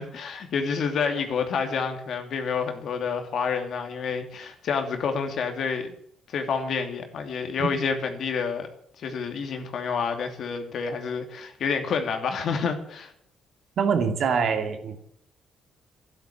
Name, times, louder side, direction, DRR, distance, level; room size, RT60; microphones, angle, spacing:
voice 1, 0.0-5.9 6.3-8.7 9.0-13.1, left 5 dB, 65° left, 6 dB, 2.7 m, -28 dB
voice 2, 13.8-15.0, right 6 dB, 65° right, 6 dB, 2.7 m, -24 dB
12.0 x 11.5 x 8.7 m, 0.68 s
cardioid pair, 90°, 0 cm